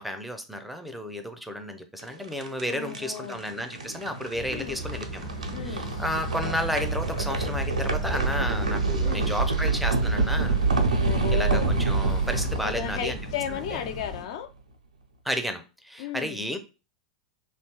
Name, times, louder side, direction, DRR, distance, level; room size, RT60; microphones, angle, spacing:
voice 1, 0.0-5.3 5.6-10.6 11.3-13.2 13.5-13.8 15.2-16.6, equal, ahead, 0.4 m, -32 dB
sound 1, 2.0-14.1, right 3 dB, 90° right, 0.4 m, -27 dB
voice 2, 2.7-3.4 4.5-4.8 5.5-5.9 9.0-9.3 11.0-11.7 12.6-14.5 16.0-16.4, left 10 dB, 60° left, 0.4 m, -34 dB
sound 2, 4.3-14.2, equal, 85° left, 0.8 m, -37 dB
2.7 x 2.2 x 2.9 m
hypercardioid pair, 95°, 4 cm